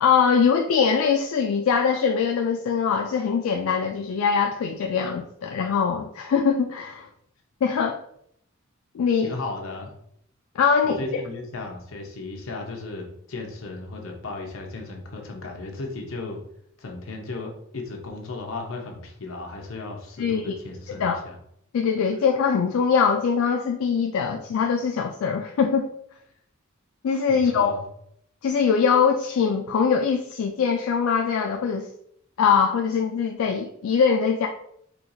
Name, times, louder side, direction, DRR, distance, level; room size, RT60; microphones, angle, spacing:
voice 1, 0.0-7.1 7.6-8.0 8.9-9.4 10.6-11.0 20.2-20.5 21.0-21.2 21.7-25.9 27.0-27.7 28.4-31.9 32.4-34.5, left 6 dB, 90° left, 3 dB, 0.3 m, -22 dB
voice 2, 9.2-9.9 10.8-16.4 16.8-21.4 27.3-27.8, left 3 dB, 75° left, 1 dB, 0.7 m, -35 dB
4.4 x 2.3 x 2.6 m, 0.71 s
head